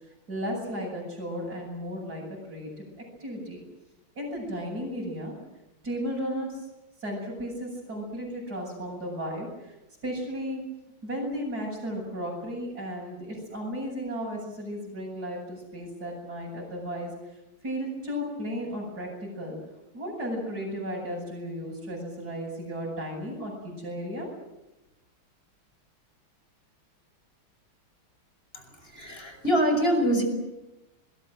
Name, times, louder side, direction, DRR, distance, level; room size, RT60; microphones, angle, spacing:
voice 1, 0.3-2.8 3.2-3.6 4.1-5.3 5.8-6.6 7.0-9.8 10.0-10.6 11.0-17.1 17.6-19.6 19.9-24.3, equal, 50° right, -6 dB, 8.4 m, -34 dB
voice 2, 28.5-30.2, equal, 25° left, 5 dB, 6.1 m, -25 dB
27.0 x 21.5 x 7.6 m, 1.0 s
omnidirectional pair, 2.3 m